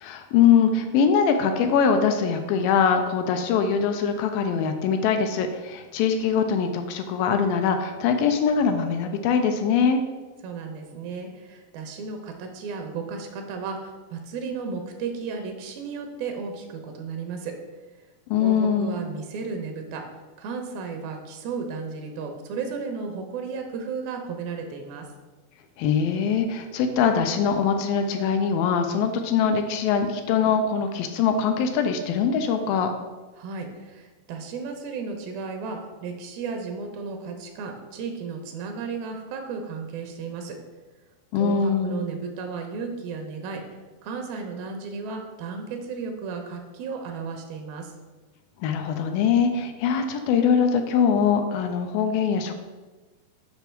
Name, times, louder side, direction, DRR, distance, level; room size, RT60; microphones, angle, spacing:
voice 1, 0.0-10.0 18.3-19.0 25.8-32.9 41.3-42.1 48.6-52.6, left 6 dB, 80° left, 6 dB, 2.2 m, -22 dB
voice 2, 10.4-17.5 18.4-20.0 20.4-25.1 33.4-40.6 41.4-43.6 44.0-47.9, right 5 dB, 80° right, 4 dB, 2.5 m, -34 dB
7.1 x 5.8 x 4.4 m, 1.2 s
omnidirectional pair, 4.3 m